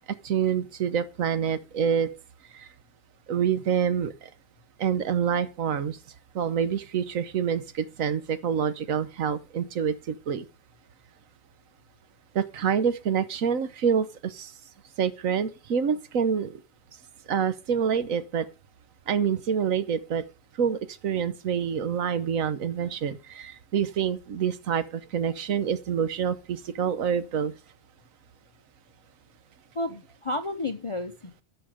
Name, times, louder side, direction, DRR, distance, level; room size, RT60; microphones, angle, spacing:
voice 1, 0.2-2.1 2.5-2.7 3.3-4.3 4.8-6.0 6.3-10.4 12.3-14.5 15.0-16.5 17.3-18.4 19.1-20.2 20.6-27.5, right 7 dB, 80° right, 1.3 m, -27 dB
voice 2, 29.7-31.4, left 2 dB, 40° left, 0.5 m, -32 dB
12.0 x 7.0 x 4.9 m
omnidirectional pair, 1.4 m